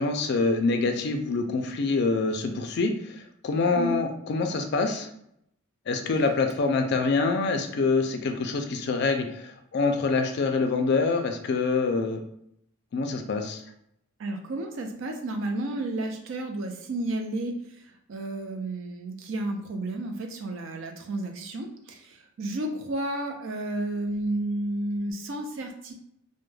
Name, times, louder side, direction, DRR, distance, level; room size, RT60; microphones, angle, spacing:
voice 1, 0.0-5.1 5.9-12.2 12.9-13.6, left 3 dB, 50° left, 5 dB, 0.3 m, -26 dB
voice 2, 14.2-17.6 18.1-25.9, right 1 dB, 60° right, 4 dB, 0.4 m, -32 dB
2.2 x 2.1 x 3.1 m, 0.74 s
head